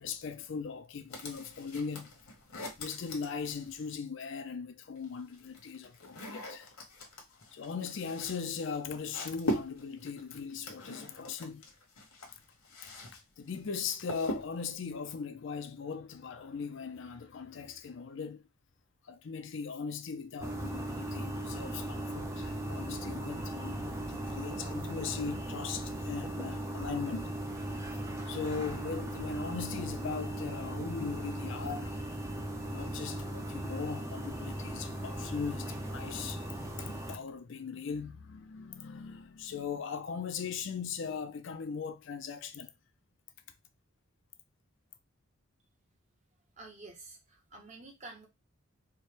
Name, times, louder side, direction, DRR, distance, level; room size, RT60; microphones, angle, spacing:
voice 1, 0.0-2.1 2.8-6.7 7.5-11.6 13.4-18.4 19.0-27.4 27.9-32.0 32.7-36.4 36.8-42.7, left 5 dB, 55° left, 0.4 m, -39 dB
sound 1, 1.1-4.0 5.0-13.2 13.5-14.7, left 1 dB, 80° left, 1.1 m, -41 dB
sound 2, 20.4-37.2, right 1 dB, 15° right, 0.5 m, -38 dB
voice 2, 46.6-48.3, right 3 dB, 30° right, 0.9 m, -49 dB
4.3 x 2.2 x 3.2 m
head